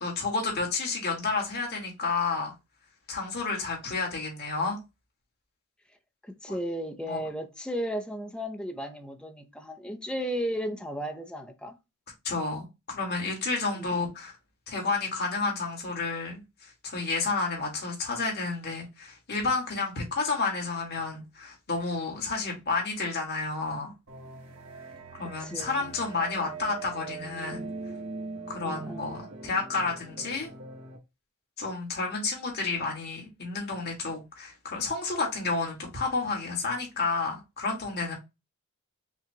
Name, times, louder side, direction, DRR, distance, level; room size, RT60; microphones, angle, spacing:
voice 1, 0.0-2.5 3.1-4.8 6.5-6.6 7.1-7.2 12.2-14.3 14.7-23.9 25.1-27.7 28.5-30.5 31.6-38.1, left 4 dB, 50° left, 1.9 m, -31 dB
voice 2, 6.2-11.8 13.9-14.1 25.4-25.9 28.6-29.1, equal, 5° left, 0.6 m, -35 dB
sound 1, 24.1-31.0, right 4 dB, 60° right, 1.3 m, -41 dB
5.6 x 2.4 x 2.9 m
head